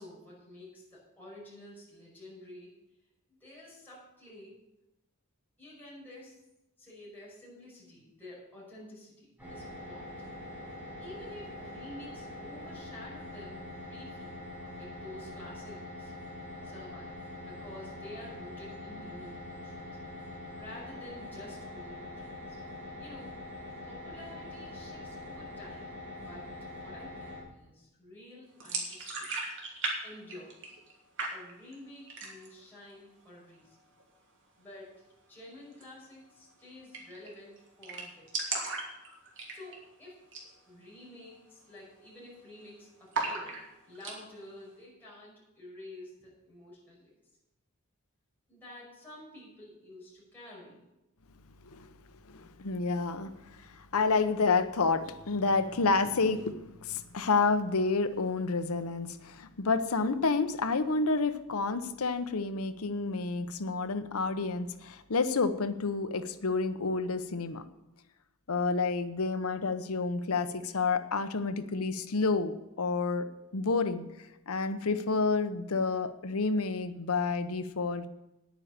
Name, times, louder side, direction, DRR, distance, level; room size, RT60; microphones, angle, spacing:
voice 1, 0.0-2.7 3.3-4.6 5.6-6.4 6.8-10.1 11.0-14.4 14.7-16.1 16.6-17.2 17.5-19.9 20.6-22.6 23.0-23.3 23.9-25.9 26.2-26.5 26.8-29.3 30.0-30.8 31.3-33.8 34.6-38.3 39.3-40.2 40.7-43.6 43.9-47.1 48.5-50.8, left 1 dB, 10° left, -7 dB, 5.6 m, -50 dB
sound 1, 9.4-27.4, left 1 dB, 5° right, 5.5 m, -44 dB
sound 2, 28.6-30.0 30.2-30.9 31.2-31.7 32.1-32.6 32.9-33.0 33.4-34.0 35.7-35.9 36.2-36.3 36.5-36.6 36.9-37.3 37.6-37.7 37.8-39.9 40.2-40.5 40.8-40.9 41.5-41.8 42.0-42.6 43.1-44.2, right 3 dB, 60° right, 2.9 m, -36 dB
voice 2, 52.3-67.6 68.5-73.2 73.5-74.1 74.5-78.0, left 4 dB, 70° left, 10 dB, 0.9 m, -29 dB
10.0 x 9.1 x 6.7 m, 0.95 s
head